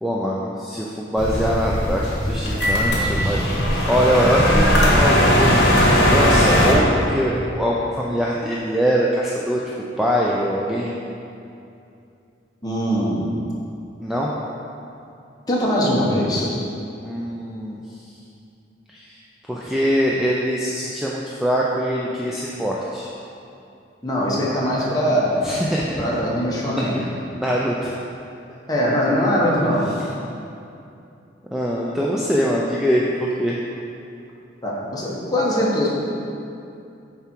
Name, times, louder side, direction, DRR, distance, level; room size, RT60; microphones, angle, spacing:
voice 1, 0.0-9.6 10.0-10.9 14.0-14.3 17.0-17.8 18.9-19.2 19.5-23.1 25.4-26.0 26.8-27.1 27.4-27.9 31.5-33.6, equal, ahead, -5 dB, 0.4 m, -23 dB
sound 1, 1.2-6.7, equal, 60° left, 1.3 m, -18 dB
voice 2, 12.6-13.3 15.5-16.5 24.0-25.4 26.0-27.0 28.7-29.9 34.6-35.9, equal, 20° left, -5 dB, 1.2 m, -21 dB
6.9 x 4.8 x 4.5 m, 2.6 s
head